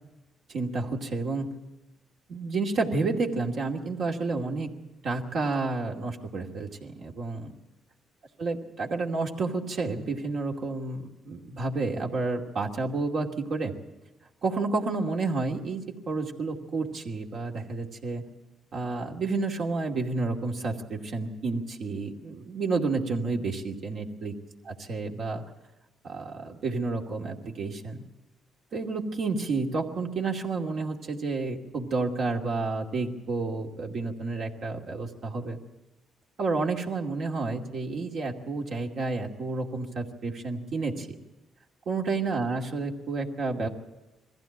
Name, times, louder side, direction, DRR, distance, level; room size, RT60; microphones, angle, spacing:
voice 1, 0.5-1.5 2.3-4.7 5.0-7.5 8.4-13.7 14.4-18.3 18.7-24.4 24.7-25.4 26.0-28.0 28.7-35.6 36.4-41.1 41.9-43.7, right 3 dB, 65° right, 0 dB, 2.5 m, -30 dB
22.0 x 15.5 x 8.8 m, 1.1 s
cardioid pair, 90°, 0 cm